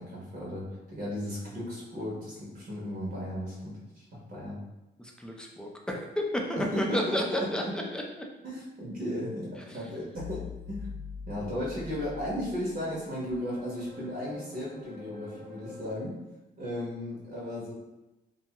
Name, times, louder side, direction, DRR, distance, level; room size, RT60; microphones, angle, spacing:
voice 1, 0.0-4.6 6.6-7.8 8.4-10.9 11.3-16.2 16.6-17.7, left 1 dB, 50° right, -5 dB, 0.9 m, -35 dB
voice 2, 5.0-8.3 9.7-9.8, equal, 5° left, 0 dB, 0.4 m, -32 dB
sound 1, 10.1-15.9, left 4 dB, 85° right, 1.0 m, -44 dB
2.6 x 2.3 x 2.8 m, 0.98 s
cardioid pair, 95°, 19 cm